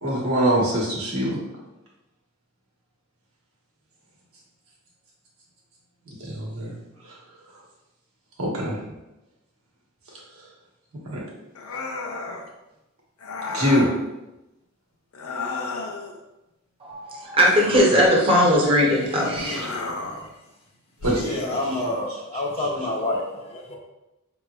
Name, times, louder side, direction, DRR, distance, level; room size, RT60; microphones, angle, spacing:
voice 1, 0.0-1.4 6.1-6.7 7.0-7.2 8.4-8.7 11.0-11.2 13.5-13.9 21.0-21.4 21.7-21.8, equal, 75° right, -4 dB, 1.2 m, -23 dB
sound 1, 11.5-12.5 13.2-14.0 15.1-16.2 17.4-18.6 19.3-20.3 21.0-22.0, left 3 dB, 85° left, 0.5 m, -33 dB
voice 2, 16.8-19.7, equal, 25° right, -3 dB, 0.7 m, -19 dB
voice 3, 18.8-19.3 19.7-20.2 21.2-23.8, left 1 dB, 30° left, -1 dB, 0.5 m, -29 dB
4.7 x 3.0 x 2.3 m, 0.96 s
head